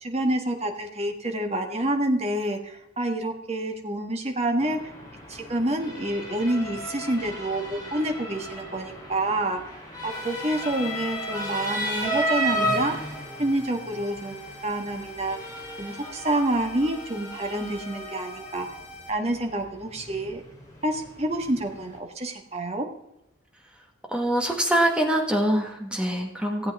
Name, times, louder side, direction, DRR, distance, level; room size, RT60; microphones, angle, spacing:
voice 1, 0.0-4.8 5.3-9.6 10.0-12.9 13.4-15.4 15.8-18.7 19.1-20.4 20.8-22.9, right 1 dB, 35° right, 4 dB, 1.6 m, -28 dB
Motor vehicle (road) / Siren, 4.6-22.0, equal, 20° left, 2.8 m, -34 dB
sound 1, 10.1-19.1, left 1 dB, 70° left, 4.6 m, -44 dB
voice 2, 24.1-26.7, right 1 dB, 5° right, 1 dB, 1.4 m, -24 dB
17.0 x 8.3 x 3.6 m, 0.84 s
head